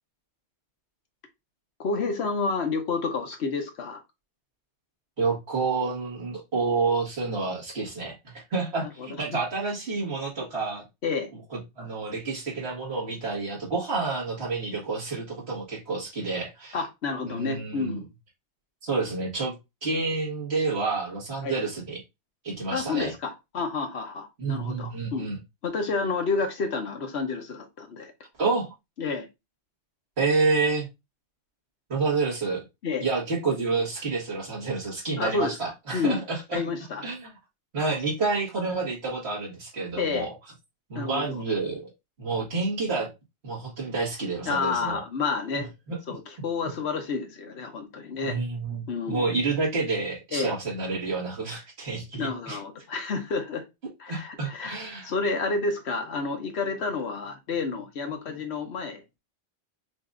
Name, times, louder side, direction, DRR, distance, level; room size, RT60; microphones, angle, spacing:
voice 1, 1.8-4.0 9.0-9.4 11.0-11.3 16.7-18.0 21.4-21.6 22.7-25.3 25.6-28.1 29.0-29.3 32.8-33.1 35.2-36.2 36.5-37.1 40.0-40.3 40.9-41.4 44.5-45.7 46.1-48.4 48.9-49.3 50.3-50.5 52.2-53.6 54.0-59.0, left 4 dB, 70° left, 1.2 m, -30 dB
voice 2, 5.2-10.8 11.8-16.8 17.3-18.0 18.8-19.5 19.8-22.0 22.4-23.1 24.4-25.4 28.4-28.7 30.2-30.9 31.9-32.6 33.0-36.6 37.0-37.3 37.7-40.3 40.9-41.9 42.2-43.1 43.4-45.0 45.5-46.0 48.2-52.6 54.1-55.1, right 4 dB, 65° right, 1.9 m, -29 dB
5.9 x 2.6 x 2.4 m
omnidirectional pair, 1.2 m